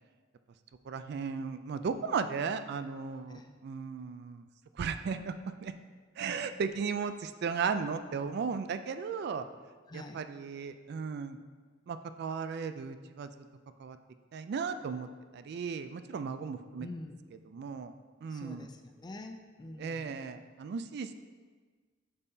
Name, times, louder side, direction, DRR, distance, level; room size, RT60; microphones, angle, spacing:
voice 1, 0.9-4.4 4.8-5.3 5.6-5.7 6.2-9.5 9.9-11.4 11.9-13.3 13.8-14.0 14.3-16.9 17.5-17.9 18.2-18.7 19.8-21.1, right 5 dB, 55° right, 10 dB, 0.3 m, -36 dB
voice 2, 9.9-10.2 16.8-17.2 18.3-20.1, left 2 dB, 20° left, 5 dB, 0.4 m, -46 dB
8.1 x 5.5 x 2.7 m, 1.4 s
head